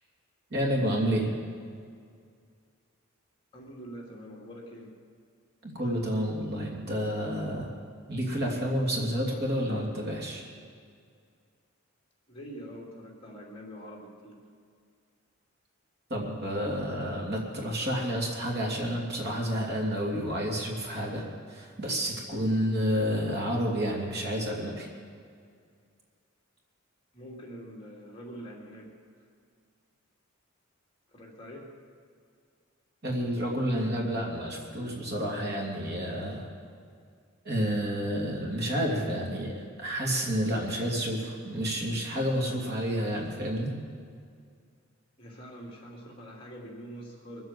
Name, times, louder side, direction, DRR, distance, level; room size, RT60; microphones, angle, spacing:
voice 1, 0.5-1.3 5.6-7.7 8.1-10.4 16.1-24.9 33.0-36.5 37.4-43.7, equal, 50° right, -1 dB, 2.9 m, -30 dB
voice 2, 3.5-4.9 12.3-14.4 27.1-28.9 29.2-29.3 31.1-31.7 45.2-47.4, equal, 25° left, -2 dB, 2.6 m, -44 dB
23.0 x 8.0 x 7.6 m, 2.2 s
head